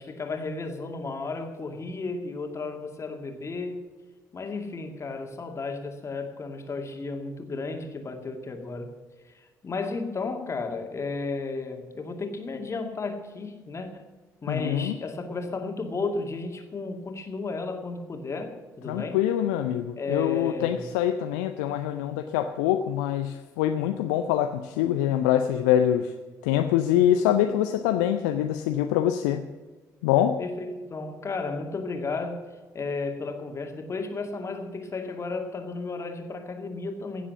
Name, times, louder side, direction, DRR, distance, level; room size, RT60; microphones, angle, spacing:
voice 1, 0.0-3.9 4.3-8.9 9.2-14.1 14.4-19.2 20.0-20.9 30.4-32.5 32.7-37.3, left 3 dB, 30° left, 2.2 m, -33 dB
voice 2, 14.5-14.9 18.9-26.1 26.4-29.5 30.0-30.4, left 11 dB, 65° left, 0.6 m, -24 dB
16.5 x 7.4 x 7.1 m
figure-of-eight pair, 45°, 9 cm